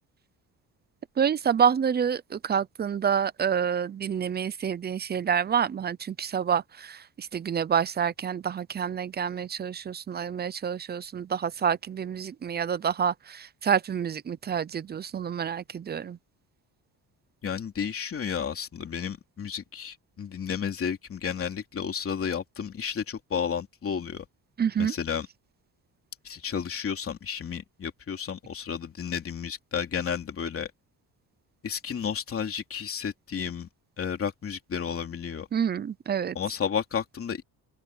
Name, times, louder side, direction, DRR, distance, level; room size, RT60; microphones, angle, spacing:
voice 1, 1.2-16.2 24.6-24.9 35.5-36.4, right 7 dB, 25° right, 0.6 m, -28 dB
voice 2, 17.4-24.2 24.8-25.3 26.2-30.7 31.6-33.7 34.0-35.5 36.3-37.4, left 7 dB, 35° left, 3.0 m, -32 dB
open air
cardioid pair, 145°, 38 cm